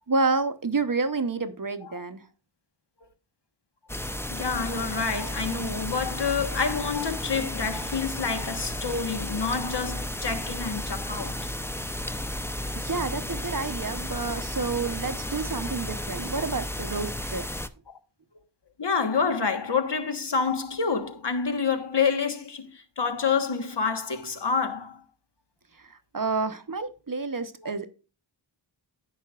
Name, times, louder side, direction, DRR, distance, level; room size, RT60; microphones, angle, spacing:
voice 1, 0.1-2.2 12.7-17.7 26.1-27.9, right 4 dB, 45° right, 1.0 m, -29 dB
sound 1, 3.9-17.7, left 1 dB, 5° left, 0.6 m, -33 dB
voice 2, 4.3-11.5 17.9-18.0 18.8-25.0, left 5 dB, 60° left, 1.4 m, -28 dB
16.5 x 5.8 x 2.4 m
wide cardioid pair, 60°, 47 cm